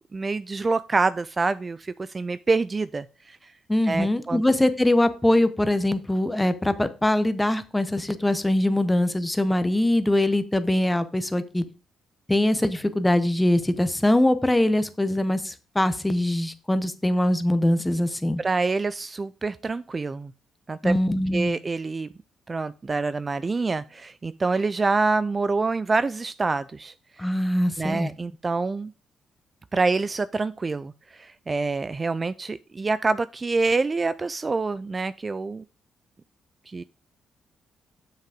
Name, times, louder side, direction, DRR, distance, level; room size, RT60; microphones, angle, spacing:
voice 1, 0.1-3.5 3.9-4.4 18.4-20.3 20.7-20.9 21.3-22.1 22.5-27.3 27.8-28.9 29.7-35.6 36.7-36.8, right 3 dB, 30° right, 14 dB, 0.3 m, -26 dB
voice 2, 3.7-11.6 12.3-18.4 20.8-21.6 27.2-28.1, left 1 dB, 10° left, 12 dB, 0.9 m, -22 dB
7.4 x 6.0 x 5.0 m, 0.34 s
cardioid pair, 90°, 0 cm